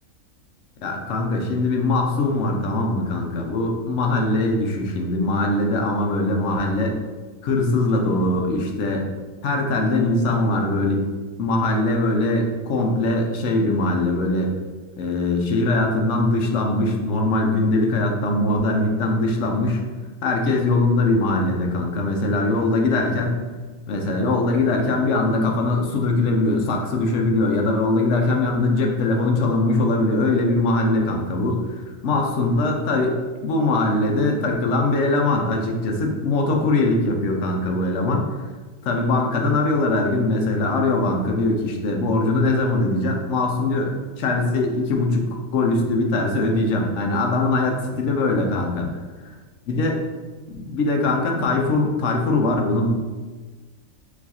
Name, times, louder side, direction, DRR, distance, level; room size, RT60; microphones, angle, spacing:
voice 1, 0.8-6.9 7.4-9.1 9.4-11.1 11.4-14.6 15.0-19.8 20.2-23.4 23.9-38.3 38.8-43.9 44.2-48.9 49.7-50.0 50.5-52.9, left 2 dB, 65° left, 1 dB, 1.0 m, -21 dB
4.6 x 2.4 x 4.1 m, 1.4 s
omnidirectional pair, 1.4 m